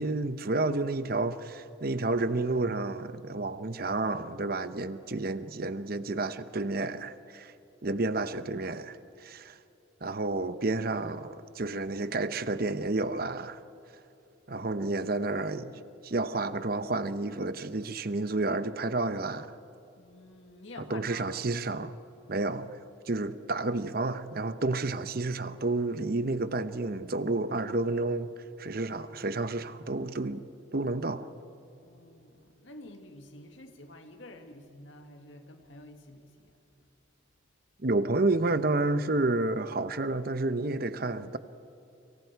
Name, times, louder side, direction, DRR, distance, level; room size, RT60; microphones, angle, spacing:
voice 1, 0.0-7.5 7.8-9.5 10.0-13.6 14.5-19.5 20.9-21.9 22.3-22.8 23.1-28.3 28.6-30.4 30.7-31.3 37.8-41.4, right 2 dB, 50° right, 0.9 m, -30 dB
voice 2, 20.0-21.4 31.8-36.6, left 2 dB, 70° left, 2.1 m, -49 dB
30.0 x 27.0 x 4.7 m
head